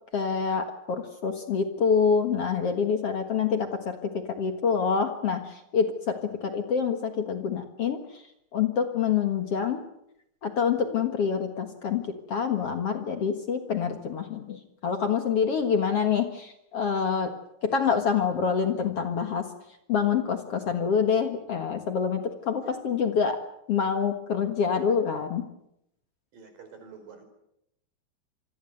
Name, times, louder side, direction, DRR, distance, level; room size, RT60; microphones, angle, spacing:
voice 1, 0.1-8.2 8.5-9.8 10.4-17.3 17.6-19.5 19.9-23.4 23.7-25.4, left 6 dB, 50° left, 7 dB, 2.1 m, -26 dB
voice 2, 26.3-27.2, right 5 dB, 70° right, 7 dB, 6.2 m, -48 dB
27.5 x 21.5 x 7.9 m, 0.79 s
omnidirectional pair, 4.1 m